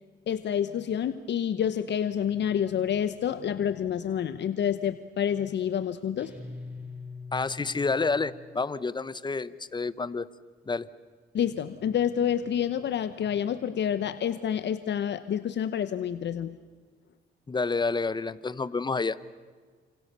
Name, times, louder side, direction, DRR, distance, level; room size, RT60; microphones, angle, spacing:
voice 1, 0.3-6.3 11.3-16.6, left 9 dB, 60° left, 12 dB, 1.1 m, -28 dB
sound 1, 6.2-8.7, left 4 dB, 5° right, 6.4 m, -43 dB
voice 2, 7.3-10.3 10.7-10.9 17.5-19.4, left 4 dB, 20° left, 17 dB, 1.0 m, -29 dB
30.0 x 27.5 x 6.9 m, 1.5 s
cardioid pair, 90°, 20 cm